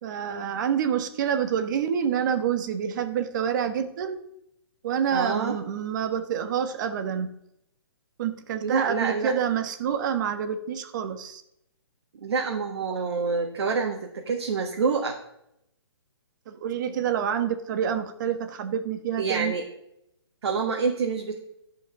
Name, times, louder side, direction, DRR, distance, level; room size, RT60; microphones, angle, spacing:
voice 1, 0.0-4.2 4.8-7.3 8.2-11.4 16.5-19.6, right 8 dB, 45° right, 9 dB, 1.2 m, -27 dB
voice 2, 5.1-5.6 8.6-9.3 12.2-15.1 19.2-19.6 20.4-21.4, right 5 dB, 65° right, 0 dB, 1.7 m, -27 dB
13.0 x 5.3 x 5.3 m, 0.77 s
hypercardioid pair, 140°, 14 cm